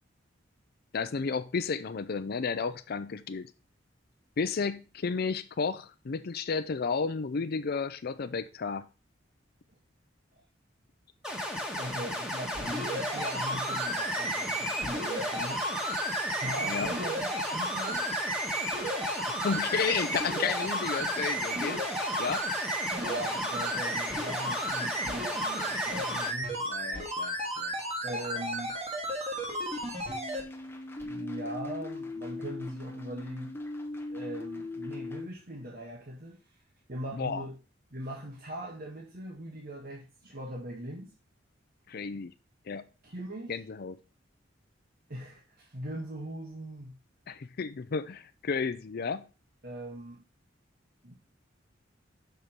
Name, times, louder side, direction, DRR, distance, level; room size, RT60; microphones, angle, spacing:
voice 1, 0.9-3.5 4.4-8.8 16.7-16.9 19.3-21.8 22.2-22.4 26.7-27.7 37.1-37.4 41.9-42.3 42.7-42.8 43.5-43.9 47.3-49.3, left 5 dB, 55° left, 0.5 m, -32 dB
sound 1, 11.2-26.3, left 1 dB, 5° right, 1.4 m, -35 dB
voice 2, 11.7-15.6 16.3-18.1 23.0-26.6 28.0-28.8 31.0-33.5 34.1-36.4 36.9-37.6 37.9-41.1 43.0-43.5 45.1-47.0 49.6-50.2 51.0-51.2, right 1 dB, 50° right, 1.5 m, -40 dB
sound 2, 12.5-30.4 31.0-31.1, right 1 dB, 35° right, 2.1 m, -34 dB
sound 3, 30.1-35.3, left 2 dB, 10° left, 0.8 m, -39 dB
6.6 x 4.5 x 5.0 m
head